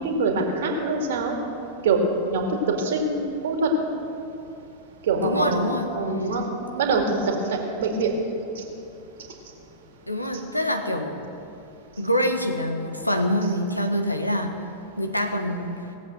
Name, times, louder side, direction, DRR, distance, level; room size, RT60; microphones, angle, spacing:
voice 1, 0.0-1.4 1.8-2.0 2.3-3.7 5.1-6.4 6.8-8.1 8.6-8.7, right 3 dB, 60° right, 2 dB, 2.1 m, -24 dB
voice 2, 5.2-5.9 10.1-11.2 12.0-14.6 15.0-15.8, equal, 85° left, 5 dB, 1.2 m, -25 dB
18.0 x 7.7 x 7.8 m, 2.8 s
figure-of-eight pair, 90°, 0 cm